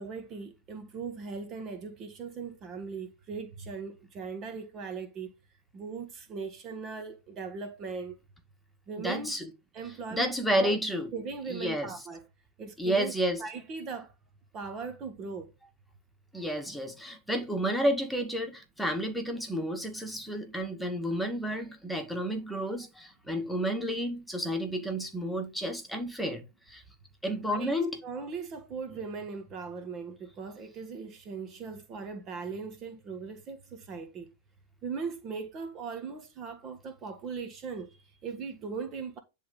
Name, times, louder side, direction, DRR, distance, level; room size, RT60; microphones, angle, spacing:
voice 1, 0.0-5.3 5.7-8.2 8.9-9.3 9.7-10.7 11.1-12.2 12.6-13.1 13.4-14.1 14.5-15.5 27.5-27.7 28.0-34.3 34.8-39.2, right 5 dB, 35° right, 1.5 m, -39 dB
voice 2, 9.0-9.5 10.1-11.1 11.5-11.9 12.8-13.4 16.3-26.4 26.7-26.8 27.2-28.0, equal, ahead, 2.0 m, -31 dB
10.5 x 3.7 x 5.5 m
hypercardioid pair, 105°, 0 cm